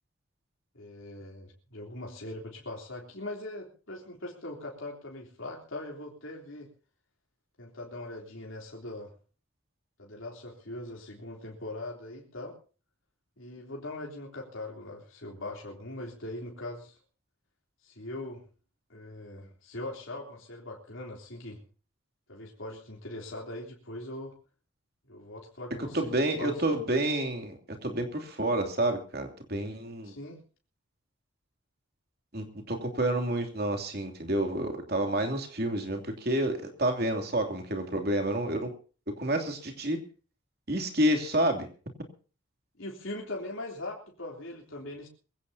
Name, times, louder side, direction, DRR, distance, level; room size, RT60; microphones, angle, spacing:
voice 1, 0.7-6.7 7.6-9.1 10.0-12.6 13.4-17.0 17.8-18.4 18.9-21.6 22.3-24.3 25.1-26.6 30.0-30.4 42.8-45.1, left 1 dB, 75° left, -1 dB, 3.3 m, -41 dB
voice 2, 25.9-27.5 27.8-30.1 32.3-38.7 39.2-40.0 40.7-41.7, right 1 dB, 50° right, 4 dB, 2.8 m, -29 dB
23.0 x 16.5 x 2.8 m, 0.38 s
head